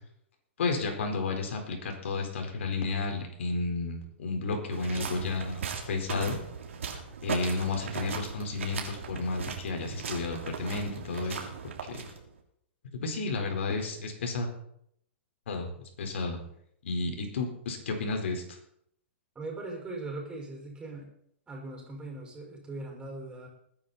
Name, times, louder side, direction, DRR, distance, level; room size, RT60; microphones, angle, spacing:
voice 1, 0.6-6.4 7.2-11.4 11.9-12.1 13.0-14.5 15.5-15.7 16.0-16.4 16.8-18.4, left 3 dB, 75° left, 3 dB, 4.4 m, -32 dB
sound 1, 4.7-12.4, right 6 dB, 85° right, 3.1 m, -38 dB
voice 2, 19.3-21.1 21.5-23.5, right 2 dB, 15° right, 0 dB, 5.6 m, -40 dB
20.5 x 9.8 x 4.2 m, 0.70 s
hypercardioid pair, 135°, 7 cm